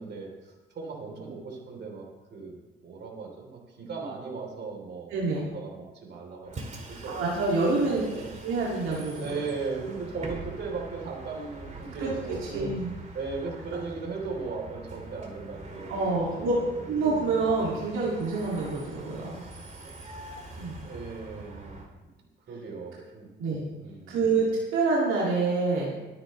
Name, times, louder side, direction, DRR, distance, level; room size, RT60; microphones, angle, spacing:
voice 1, 0.0-2.6 2.8-5.1 5.5-7.2 7.8-8.4 9.2-12.7 13.1-16.9 19.3-19.9 20.8-21.8 22.1-22.2 22.5-23.3 23.8-24.2, right 4 dB, 60° right, 1 dB, 3.5 m, -37 dB
voice 2, 5.1-5.5 7.1-8.0 8.4-9.3 12.0-12.1 12.5-12.9 15.9-16.5 16.9-19.4 20.5-20.7 23.4-23.6 24.1-24.4 24.7-26.0, right 3 dB, 85° right, -5 dB, 2.4 m, -27 dB
Bus, 6.4-21.9, right 2 dB, 35° right, 2.5 m, -43 dB
21.0 x 8.9 x 3.2 m, 1.1 s
cardioid pair, 90°, 20 cm